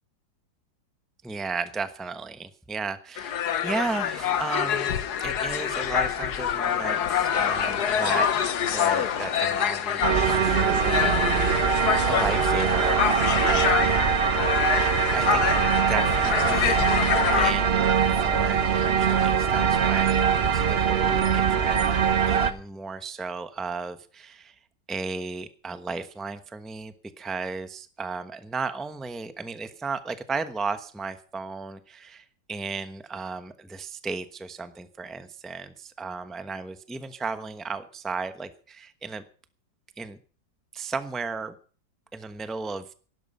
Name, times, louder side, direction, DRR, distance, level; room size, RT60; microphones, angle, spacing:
voice 1, 1.2-8.3 8.7-11.6 12.0-14.1 15.1-15.5 15.9-17.1 17.3-17.8 18.2-21.9 22.3-24.5 24.9-39.2 40.0-40.2 40.7-41.5 42.1-42.9, right 4 dB, ahead, 10 dB, 0.7 m, -34 dB
sound 1, 3.2-17.5, left 9 dB, 70° left, 1.5 m, -26 dB
sound 2, 10.0-22.5, right 7 dB, 45° right, 1.1 m, -23 dB
17.0 x 12.0 x 5.5 m, 0.41 s
omnidirectional pair, 1.8 m